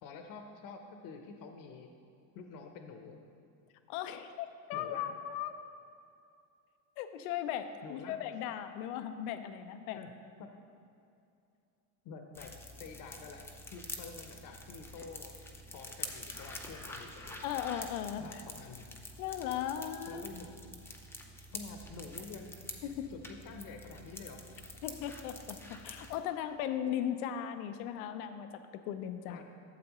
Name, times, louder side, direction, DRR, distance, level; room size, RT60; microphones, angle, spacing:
voice 1, 0.0-1.9 2.3-3.2 4.7-5.1 7.8-8.2 9.9-10.5 12.0-12.5 12.8-15.4 15.7-17.4 18.2-18.9 20.1-20.5 21.5-22.6 23.1-24.4 29.3-29.4, left 4 dB, 50° left, 4 dB, 0.9 m, -48 dB
voice 2, 3.9-5.6 7.0-10.0 17.4-18.2 19.2-20.2 22.8-23.1 24.8-29.4, left 10 dB, 80° left, 9 dB, 0.7 m, -37 dB
sound 1, 12.3-26.2, left 1 dB, 5° left, 0.6 m, -47 dB
12.0 x 7.5 x 3.0 m, 2.5 s
supercardioid pair, 125°, 43 cm